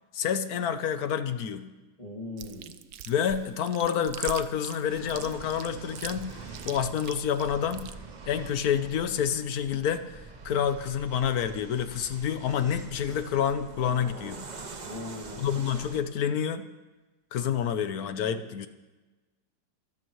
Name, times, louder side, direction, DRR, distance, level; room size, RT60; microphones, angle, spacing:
voice 1, 0.1-1.7 3.1-7.9 8.3-14.4 15.4-16.7 17.3-18.7, left 8 dB, 65° left, 11 dB, 1.2 m, -28 dB
voice 2, 2.0-2.7 14.8-15.6 18.3-18.4, left 2 dB, 20° left, -3 dB, 2.1 m, -40 dB
Chewing mastication, 2.4-7.9, right 10 dB, 65° right, 1.0 m, -41 dB
sound 1, 4.9-16.0, right 4 dB, 40° right, 0.6 m, -45 dB
25.0 x 13.5 x 3.1 m, 1.2 s
omnidirectional pair, 1.9 m